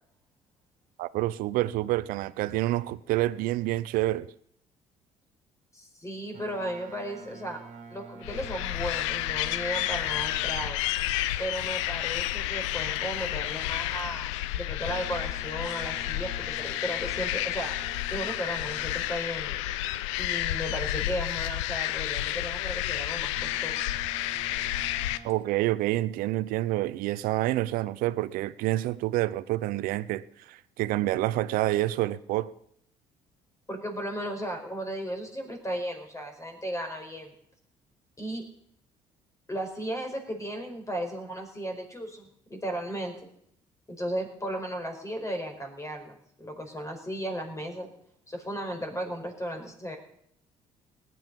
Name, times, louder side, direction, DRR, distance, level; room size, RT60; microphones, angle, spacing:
voice 1, 1.0-4.3 25.2-32.5, right 16 dB, 70° right, 0.7 m, -28 dB
voice 2, 5.7-7.6 7.9-10.8 11.4-17.7 18.1-19.6 20.2-23.9 33.7-37.3 38.2-38.4 39.5-43.1 43.9-47.9 48.3-50.0, equal, 20° left, 4.9 m, -35 dB
Boat Water vehicle, 6.3-10.9 14.8-19.4 23.3-25.4, right 5 dB, 50° right, 2.2 m, -48 dB
sound 1, 8.2-25.2, left 15 dB, 80° left, 0.6 m, -31 dB
19.5 x 9.4 x 5.4 m
hypercardioid pair, 55°, 15 cm